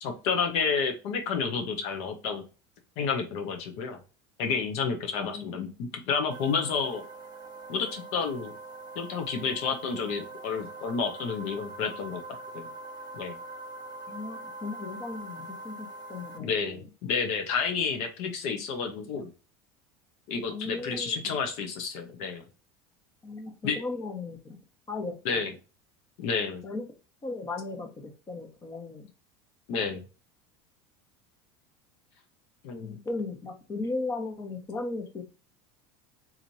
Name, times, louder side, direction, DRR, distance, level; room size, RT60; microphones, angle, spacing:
voice 1, 0.0-2.4 3.0-4.0 4.4-7.0 7.7-8.5 9.0-12.2 12.5-12.7 13.1-13.4 16.4-16.8 17.1-19.3 20.3-22.4 23.6-23.8 25.2-25.5 26.2-26.6 29.7-30.0 32.6-32.9, left 5 dB, 65° left, 5 dB, 0.8 m, -30 dB
voice 2, 5.2-5.5 14.1-16.9 20.5-21.4 23.2-24.6 24.9-25.5 26.6-26.8 27.2-29.1 32.8-35.2, left 3 dB, 25° left, 5 dB, 1.2 m, -36 dB
sound 1, 6.3-16.4, right 2 dB, 35° right, 0.9 m, -43 dB
4.1 x 2.9 x 2.7 m, 0.33 s
supercardioid pair, 110°, 12 cm